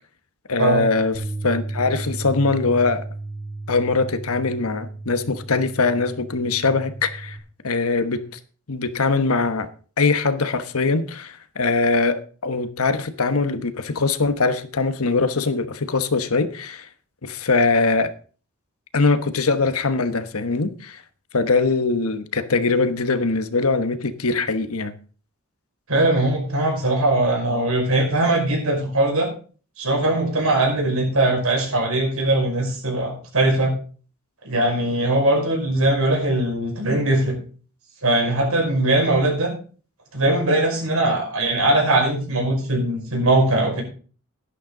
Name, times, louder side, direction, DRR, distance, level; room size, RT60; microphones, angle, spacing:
voice 1, 0.5-3.0 3.7-7.4 7.6-8.2 8.7-9.7 10.0-16.9 17.2-18.1 18.9-21.0 21.3-24.9, left 3 dB, 90° left, 1.2 m, -22 dB
Bass guitar, 1.1-7.4, right 2 dB, 40° right, 2.4 m, -34 dB
voice 2, 25.9-29.3 29.8-33.7 34.4-37.4 38.0-39.5 40.1-43.8, right 1 dB, 80° right, 5.4 m, -20 dB
12.0 x 11.5 x 3.9 m
head